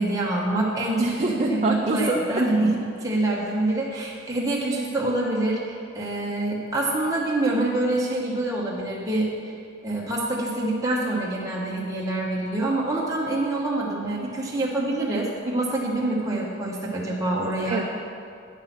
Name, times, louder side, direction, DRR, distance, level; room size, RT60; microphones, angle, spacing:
voice 1, 0.0-1.0 1.5-9.5 9.8-17.8, right 2 dB, 15° right, -4 dB, 1.0 m, -26 dB
voice 2, 1.0-2.4 17.7-17.8, right 2 dB, 35° right, -1 dB, 0.6 m, -24 dB
9.1 x 5.7 x 5.9 m, 2.4 s
head